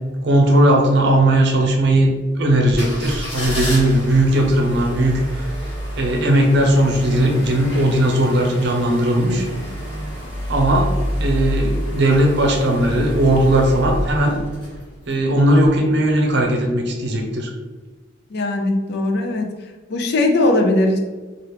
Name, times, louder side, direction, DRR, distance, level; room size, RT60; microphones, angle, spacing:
voice 1, 0.2-2.1 2.4-5.5 6.0-9.5 10.5-14.4 15.1-17.5, right 1 dB, 60° right, 2 dB, 0.6 m, -17 dB
sound 1, 2.6-15.1 15.6-15.7, equal, 25° left, 1.0 m, -28 dB
voice 2, 18.3-19.5 19.9-21.0, left 2 dB, 55° left, 3 dB, 0.5 m, -19 dB
3.0 x 2.4 x 3.3 m, 1.3 s
head